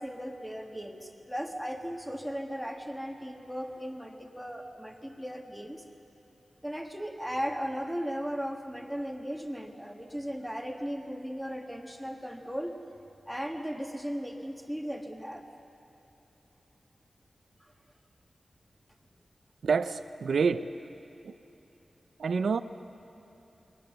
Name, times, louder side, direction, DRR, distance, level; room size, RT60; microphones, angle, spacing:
voice 1, 0.0-5.8 6.6-12.8 13.3-15.5 17.6-17.7, equal, ahead, 3 dB, 1.7 m, -37 dB
voice 2, 19.6-20.7 21.2-21.3 22.2-22.6, right 5 dB, 90° right, 11 dB, 0.7 m, -27 dB
28.5 x 21.5 x 6.9 m, 3.0 s
wide cardioid pair, 130°, 0 cm